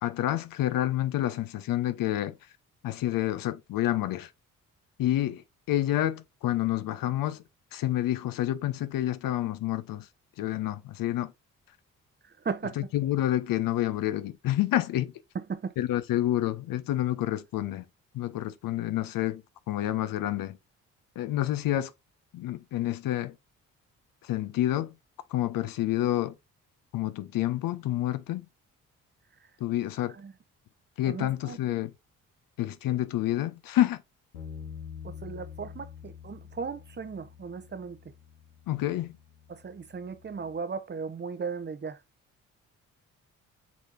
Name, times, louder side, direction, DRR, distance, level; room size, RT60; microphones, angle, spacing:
voice 1, 0.0-2.4 2.8-4.3 5.0-7.4 7.7-10.1 10.4-11.3 12.8-15.1 15.8-17.8 18.1-19.4 19.7-20.6 21.2-21.9 22.3-23.3 24.2-24.9 25.3-26.3 26.9-28.4 29.6-30.1 31.0-31.9 32.6-34.0 38.7-39.1, left 13 dB, 55° left, 0.7 m, -28 dB
voice 2, 12.2-12.9 15.3-15.7 29.4-29.5 30.0-30.3 31.0-31.6 35.0-38.1 39.5-42.0, right 5 dB, 25° right, 0.8 m, -37 dB
Bass guitar, 34.3-40.6, left 7 dB, 85° left, 1.1 m, -46 dB
6.3 x 3.3 x 2.5 m
hypercardioid pair, 45°, 39 cm